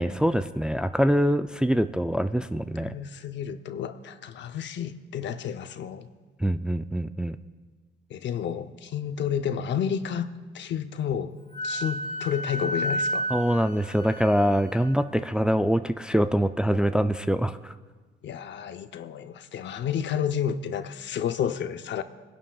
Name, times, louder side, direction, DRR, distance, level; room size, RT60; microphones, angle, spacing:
voice 1, 0.0-2.9 6.4-7.4 13.3-17.7, equal, 5° right, 0.3 m, -24 dB
voice 2, 2.8-6.1 8.1-10.3 10.5-11.3 11.6-13.3 18.2-22.0, left 8 dB, 65° left, 0.7 m, -30 dB
Wind instrument woodwind instrument, 11.5-15.0, equal, 30° left, 1.5 m, -31 dB
23.0 x 11.5 x 2.3 m
cardioid pair, 90°, 20 cm